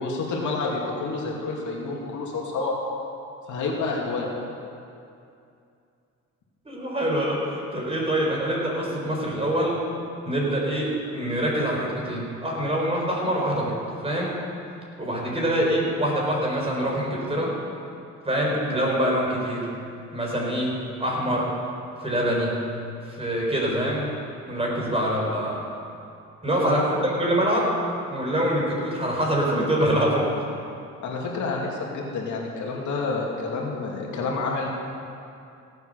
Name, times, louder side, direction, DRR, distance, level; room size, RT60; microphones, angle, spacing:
voice 1, 0.0-2.8 3.5-4.3 26.5-26.8 31.0-34.7, left 3 dB, 75° left, -2 dB, 2.5 m, -29 dB
voice 2, 6.7-9.8 10.2-13.8 14.0-14.4 15.0-17.5 18.2-19.7 20.1-21.5 22.0-22.6 23.0-24.1 24.5-25.6 26.4-27.7 28.1-30.3, equal, 20° right, -3 dB, 4.3 m, -25 dB
17.5 x 7.9 x 6.5 m, 2.5 s
cardioid pair, 90°, 30 cm